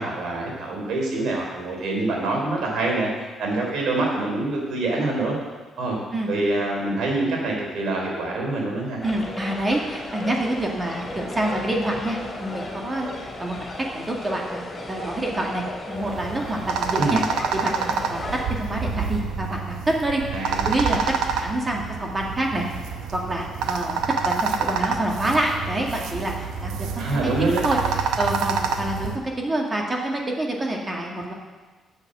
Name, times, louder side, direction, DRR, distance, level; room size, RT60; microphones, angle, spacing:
voice 1, 0.0-3.1 3.4-5.3 5.8-6.0 6.3-9.0 17.0-17.2 20.3-20.7 27.0-27.7, right 2 dB, 75° right, -1 dB, 3.5 m, -25 dB
sound 1, 9.0-18.4, left 2 dB, 30° left, 3.3 m, -35 dB
voice 2, 9.0-17.2 17.5-20.2 20.7-22.7 23.1-29.1 29.4-31.3, right 1 dB, 25° right, 0 dB, 2.0 m, -27 dB
sound 2, 16.0-29.2, right 5 dB, 90° right, 0.8 m, -27 dB
8.0 x 7.2 x 7.6 m, 1.3 s
cardioid pair, 90°, 0 cm